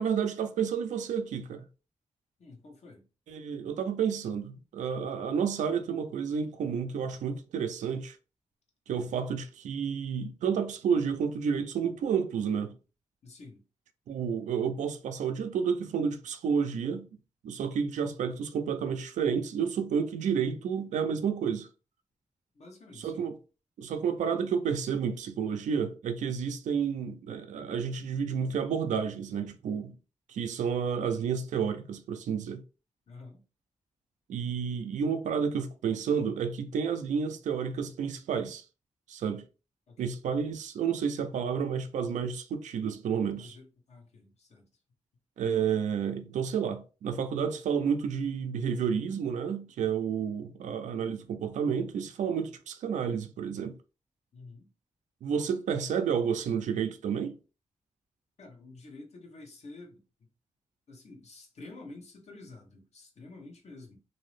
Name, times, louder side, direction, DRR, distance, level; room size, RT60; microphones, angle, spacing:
voice 1, 0.0-1.7 3.3-8.2 8.9-12.7 14.1-17.1 17.4-21.7 22.9-23.4 23.8-30.0 30.3-32.6 34.3-38.6 39.1-39.4 40.0-43.6 45.4-53.8 55.2-57.4, right 7 dB, 90° right, 0.4 m, -30 dB
voice 2, 2.4-3.0 8.9-9.1 13.2-13.7 22.5-23.3 33.1-33.4 39.9-40.2 43.3-44.7 54.3-54.7 58.4-60.0 60.9-64.0, left 3 dB, 65° left, 0.9 m, -49 dB
2.6 x 2.0 x 3.1 m
cardioid pair, 60°, 12 cm